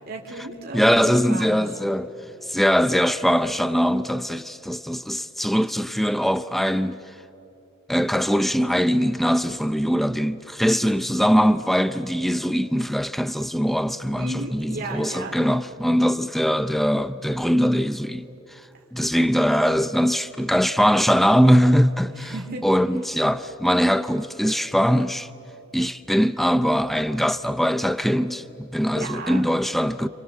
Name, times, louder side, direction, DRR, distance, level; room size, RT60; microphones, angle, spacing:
voice 1, 0.0-1.7 14.2-15.3 22.2-22.6 28.9-29.4, right 2 dB, 50° right, 2.9 m, -34 dB
voice 2, 0.7-2.1 2.5-7.0 7.9-18.3 18.9-22.3 22.6-25.3 25.7-30.1, equal, ahead, 0.5 m, -21 dB
29.0 x 27.5 x 7.3 m
head